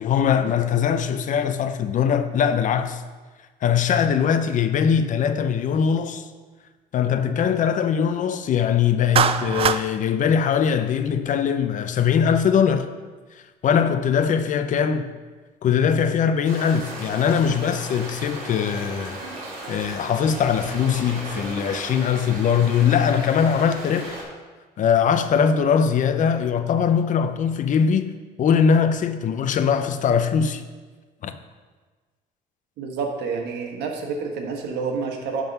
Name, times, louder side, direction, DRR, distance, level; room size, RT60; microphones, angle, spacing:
voice 1, 0.0-3.0 3.6-6.3 6.9-12.9 13.6-15.1 15.6-19.2 19.7-24.2 24.8-28.1 28.4-30.6 31.2-31.3, left 7 dB, 50° left, 0.6 m, -21 dB
Clapping, 9.2-9.8, right 8 dB, 35° right, 0.3 m, -20 dB
sound 1, 16.4-24.2, right 1 dB, 55° right, 2.8 m, -36 dB
voice 2, 32.8-35.4, right 5 dB, 80° right, 1.4 m, -28 dB
10.5 x 3.9 x 5.3 m
cardioid pair, 110°, 17 cm